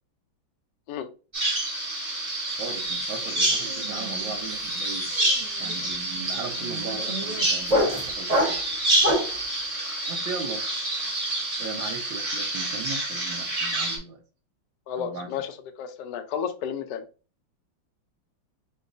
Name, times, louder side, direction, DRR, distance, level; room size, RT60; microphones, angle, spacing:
Bird vocalization bird call bird song, 1.3-14.0, right 1 dB, 20° right, 1.1 m, -28 dB
sound 1, 2.6-2.9 3.2-9.4, equal, 45° right, 0.5 m, -29 dB
voice 1, 2.6-5.1 5.6-8.6 10.1-10.6 11.6-14.2 15.0-15.3, right 4 dB, 70° right, 4 dB, 1.5 m, -37 dB
voice 2, 14.9-17.0, left 8 dB, 75° left, 7 dB, 1.0 m, -32 dB
5.2 x 2.3 x 2.5 m, 0.35 s
omnidirectional pair, 2.3 m